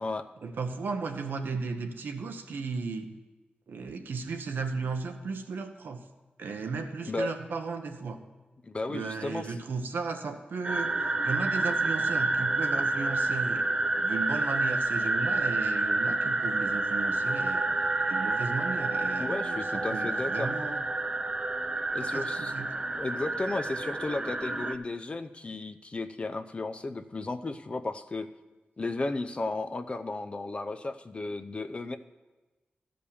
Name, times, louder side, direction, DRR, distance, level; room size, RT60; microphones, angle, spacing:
voice 1, 0.4-3.1 3.7-6.0 6.4-8.2 8.9-10.9 11.2-17.7 18.1-20.8 22.0-22.7, right 4 dB, 80° right, 5 dB, 1.0 m, -35 dB
voice 2, 8.6-9.5 19.2-20.5 21.9-22.5 22.9-28.3 28.8-32.0, left 2 dB, 35° left, 8 dB, 0.6 m, -34 dB
sound 1, 10.6-24.8, right 2 dB, 25° right, 0.6 m, -29 dB
13.0 x 5.2 x 6.9 m, 1.2 s
wide cardioid pair, 90°, 3 cm